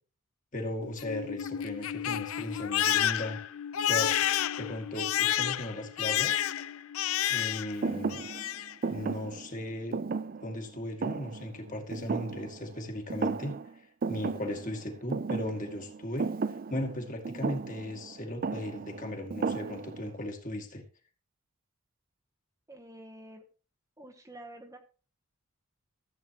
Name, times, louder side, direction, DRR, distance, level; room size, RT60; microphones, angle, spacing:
voice 1, 0.5-3.4 3.8-4.1 4.6-6.5 7.3-8.2 8.9-10.0 10.4-13.6 14.1-16.3 16.7-20.8, left 1 dB, 35° left, 3 dB, 2.0 m, -37 dB
Crying sobbing, 0.8-7.8 8.1-8.7, left 11 dB, 65° left, 0.5 m, -30 dB
Thump thud, 7.8-12.8 13.1-13.7 14.0-20.1, right 4 dB, 40° right, 0.4 m, -35 dB
voice 2, 22.7-23.4 24.0-24.8, right 1 dB, 15° right, 3 dB, 1.0 m, -48 dB
14.5 x 8.2 x 3.0 m, 0.36 s
head